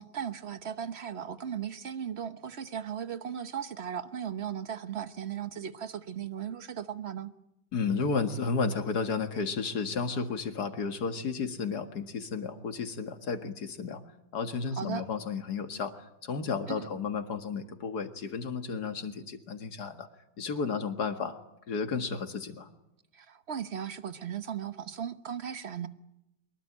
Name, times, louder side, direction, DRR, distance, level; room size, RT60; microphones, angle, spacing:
voice 1, 0.0-7.3 14.8-15.1 16.7-16.9 23.1-25.9, right 8 dB, 40° right, 1.1 m, -37 dB
voice 2, 7.7-14.0 14.3-20.1 20.4-21.4 21.7-22.7, left 5 dB, 60° left, 2.3 m, -32 dB
24.0 x 22.0 x 8.8 m
omnidirectional pair, 2.0 m